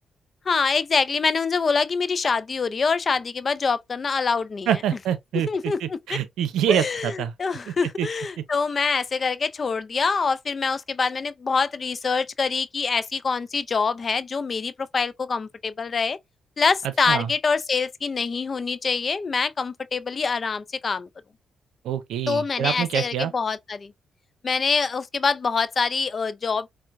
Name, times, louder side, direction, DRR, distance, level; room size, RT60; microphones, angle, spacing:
voice 1, 0.5-4.7 5.3-6.2 6.7-7.1 7.4-16.2 16.6-21.1 22.3-23.9 24.4-26.7, left 5 dB, 45° left, 0.4 m, -25 dB
voice 2, 4.7-7.3 7.7-8.1 17.1-17.3 21.8-23.3, right 9 dB, 90° right, 0.6 m, -26 dB
4.4 x 2.1 x 2.5 m
cardioid pair, 65°, 0 cm